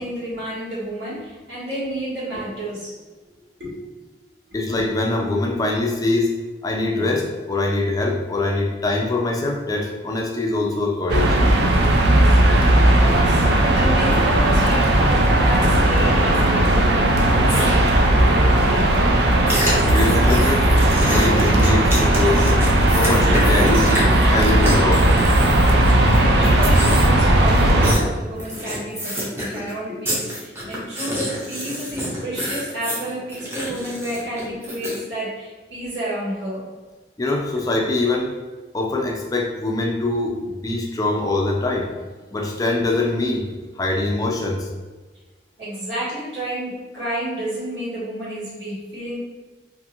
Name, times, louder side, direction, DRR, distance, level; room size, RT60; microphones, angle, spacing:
voice 1, 0.0-2.9 3.6-3.8 4.5-4.6 11.7-12.4 12.7-19.1 21.1-21.7 26.1-36.7 45.6-49.2, right 1 dB, 80° right, -9 dB, 1.5 m, -30 dB
voice 2, 4.5-11.4 19.7-20.7 21.0-22.4 22.9-23.9 24.3-25.2 37.2-38.4 38.7-41.9 42.3-43.5 43.8-44.7, left 2 dB, 20° left, 0 dB, 0.4 m, -23 dB
sound 1, 11.1-27.9, right 1 dB, 60° right, 0.4 m, -16 dB
sound 2, 17.5-17.7 19.5-26.2 26.4-27.2 27.5-28.0 28.4-29.7 30.0-35.0, equal, 15° right, 0.7 m, -28 dB
2.7 x 2.5 x 2.6 m, 1.3 s
head